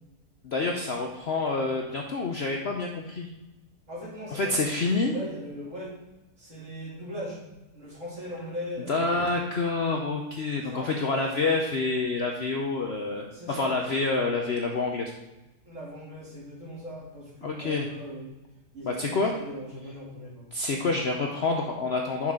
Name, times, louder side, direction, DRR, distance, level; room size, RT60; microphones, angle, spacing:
voice 1, 0.4-3.3 4.3-5.1 8.9-15.1 17.4-17.9 18.8-19.3 20.5-22.3, left 3 dB, 55° left, 1 dB, 0.8 m, -27 dB
voice 2, 3.9-5.9 6.4-7.4 7.7-9.1 10.6-11.2 13.3-13.8 15.7-18.3 18.7-20.5, equal, 50° right, -7 dB, 3.4 m, -39 dB
7.3 x 6.4 x 3.7 m, 1.0 s
omnidirectional pair, 1.7 m